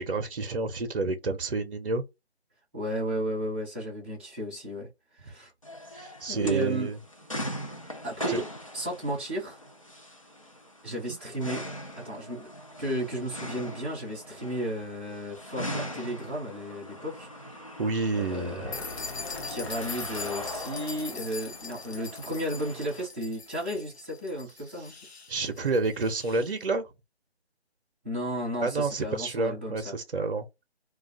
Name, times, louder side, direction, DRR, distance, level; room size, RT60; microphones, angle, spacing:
voice 1, 0.0-2.0 5.9-7.0 8.3-8.4 10.9-11.2 17.8-18.7 25.3-26.9 28.6-30.5, right 3 dB, 55° right, 0.6 m, -29 dB
voice 2, 2.7-4.9 5.2-5.5 6.3-6.9 8.0-8.5 8.7-9.6 10.8-11.6 12.0-12.5 12.8-17.3 18.1-19.0 19.4-24.9 28.0-30.0, equal, 10° right, 0.6 m, -33 dB
sound 1, 5.6-23.1, equal, 30° left, 0.4 m, -40 dB
sound 2, 18.3-23.4 23.7-23.8, left 3 dB, 90° left, 1.0 m, -46 dB
sound 3, 18.7-26.5, left 4 dB, 70° left, 0.6 m, -42 dB
2.4 x 2.3 x 3.3 m
figure-of-eight pair, 150°, 33 cm